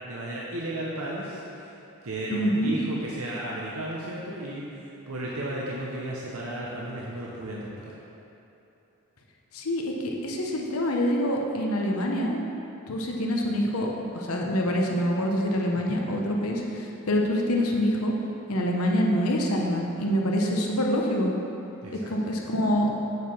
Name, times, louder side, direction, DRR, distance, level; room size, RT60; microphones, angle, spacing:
voice 1, 0.0-1.7 2.0-7.9 15.7-16.0 21.8-22.1, right 1 dB, 80° right, -5 dB, 0.9 m, -34 dB
voice 2, 2.3-2.8 9.5-12.4 12.9-18.1 18.5-21.3 22.1-22.9, equal, 90° left, 0 dB, 1.0 m, -26 dB
8.0 x 4.7 x 5.6 m, 2.8 s
head